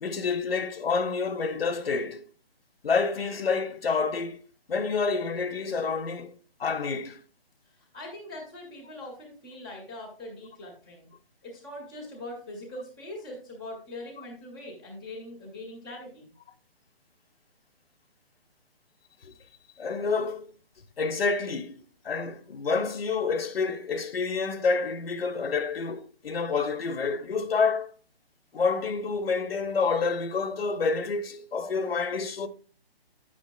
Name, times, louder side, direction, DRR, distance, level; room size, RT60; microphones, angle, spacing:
voice 1, 0.0-2.2 2.8-4.4 4.7-7.2 19.2-19.3 19.8-20.5 21.0-21.8 22.0-27.9 28.5-32.5, left 4 dB, 75° left, 1.0 m, -28 dB
voice 2, 7.7-11.1 11.4-16.3, left 1 dB, 5° right, 0.5 m, -42 dB
10.0 x 8.7 x 2.2 m
hypercardioid pair, 170°, 30 cm